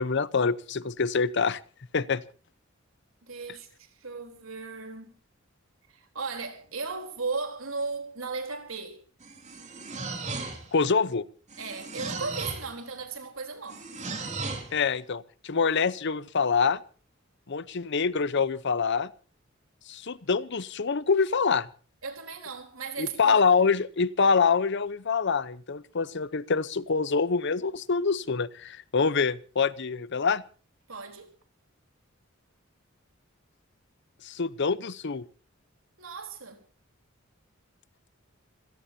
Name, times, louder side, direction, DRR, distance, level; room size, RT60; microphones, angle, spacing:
voice 1, 0.0-1.6 1.9-2.2 10.7-11.2 14.7-16.8 17.5-19.1 19.9-21.7 23.0-30.4 34.2-35.2, left 5 dB, 60° left, 0.8 m, -25 dB
voice 2, 3.2-5.1 5.9-9.0 11.6-13.9 22.0-23.7 30.9-31.3 36.0-36.6, right 4 dB, 85° right, 3.8 m, -36 dB
sound 1, 9.2-10.8 11.5-12.7 13.7-14.7, right 3 dB, 35° right, 3.7 m, -36 dB
27.0 x 17.0 x 2.8 m
head